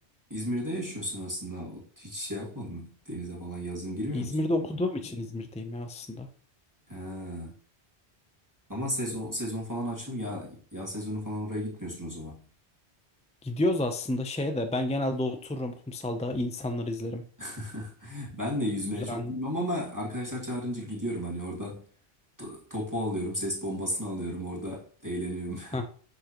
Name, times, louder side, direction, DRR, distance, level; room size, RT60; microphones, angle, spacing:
voice 1, 0.3-4.3 6.9-7.5 8.7-12.4 17.4-21.8 22.4-25.8, equal, 15° right, -4 dB, 2.0 m, -34 dB
voice 2, 4.1-6.3 13.4-17.2 18.9-19.3 25.7-25.9, left 1 dB, 10° left, 6 dB, 0.4 m, -30 dB
7.6 x 6.6 x 2.9 m, 0.44 s
omnidirectional pair, 1.1 m